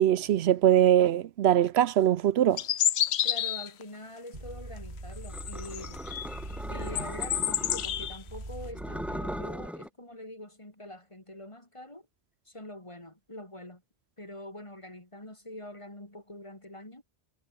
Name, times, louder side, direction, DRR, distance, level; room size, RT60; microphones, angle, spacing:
voice 1, 0.0-2.6, right 11 dB, 80° right, 0.9 m, -22 dB
sound 1, 2.6-3.8 5.2-6.4 6.8-8.2, left 10 dB, 80° left, 1.0 m, -29 dB
voice 2, 3.2-6.0 6.7-12.1 12.5-13.8 14.2-17.0, left 1 dB, 30° left, 3.9 m, -44 dB
sound 2, 4.3-9.7, right 2 dB, 45° right, 4.0 m, -41 dB
sound 3, 5.3-8.1 8.7-9.9, equal, ahead, 6.7 m, -39 dB
omnidirectional pair, 1.1 m